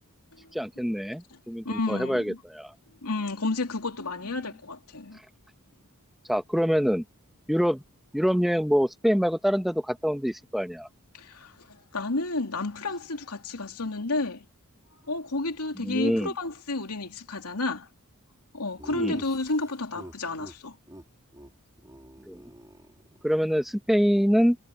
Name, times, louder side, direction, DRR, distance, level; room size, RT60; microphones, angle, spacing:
voice 1, 0.5-2.7 6.3-7.0 7.5-7.8 8.1-10.9 15.8-16.3 18.9-19.2 22.3-22.4 23.2-24.6, equal, ahead, 1.4 m, -25 dB
voice 2, 1.6-2.4 3.0-5.2 11.1-14.4 15.1-17.9 18.5-20.8, left 2 dB, 85° left, 2.8 m, -31 dB
Laughter, 18.8-20.6 20.9-21.0 21.3-21.5 21.8-23.4, equal, 15° right, 4.1 m, -46 dB
head